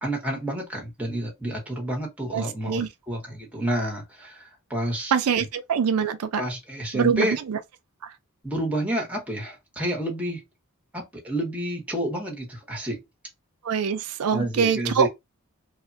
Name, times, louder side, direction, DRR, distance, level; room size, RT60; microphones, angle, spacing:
voice 1, 0.0-5.4 6.3-7.4 8.4-10.4 10.9-13.0 14.3-15.1, right 1 dB, 5° right, 0.8 m, -29 dB
voice 2, 2.3-2.9 5.1-6.4 6.9-7.6 8.0-8.1 13.6-15.1, right 7 dB, 80° right, 0.4 m, -24 dB
3.1 x 2.1 x 2.5 m
head